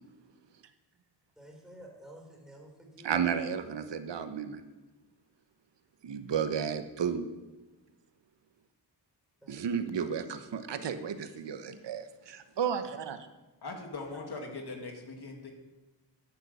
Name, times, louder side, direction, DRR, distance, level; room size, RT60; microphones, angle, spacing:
voice 1, 1.4-3.2 9.4-9.9, right 1 dB, ahead, -1 dB, 4.2 m, -51 dB
voice 2, 3.0-4.6 6.0-7.3 9.5-13.2, right 7 dB, 80° right, 9 dB, 1.1 m, -33 dB
voice 3, 13.6-15.5, left 3 dB, 65° left, 3 dB, 2.2 m, -40 dB
10.5 x 9.7 x 6.7 m, 1.1 s
wide cardioid pair, 110°, 42 cm